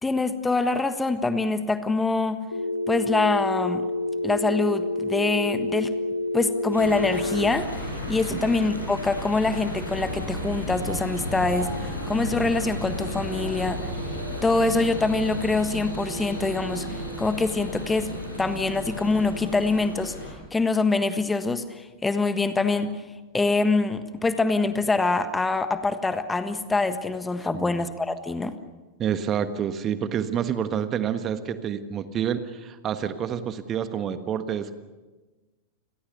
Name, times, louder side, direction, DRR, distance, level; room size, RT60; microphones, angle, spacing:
voice 1, 0.0-2.4 2.9-3.8 4.2-5.9 6.3-13.8 14.4-18.1 18.4-20.1 20.5-22.9 23.3-28.6, left 3 dB, 10° left, 10 dB, 1.5 m, -25 dB
Telephone, 2.5-7.5, left 2 dB, 85° left, 2.1 m, -28 dB
sound 1, 3.9-20.6, right 11 dB, 60° right, 1.7 m, -48 dB
sound 2, 6.7-20.3, left 1 dB, 90° right, 6.5 m, -33 dB
voice 2, 29.0-34.7, right 8 dB, 30° right, 10 dB, 1.4 m, -28 dB
29.5 x 22.0 x 6.7 m, 1.3 s
figure-of-eight pair, 90°, 0 cm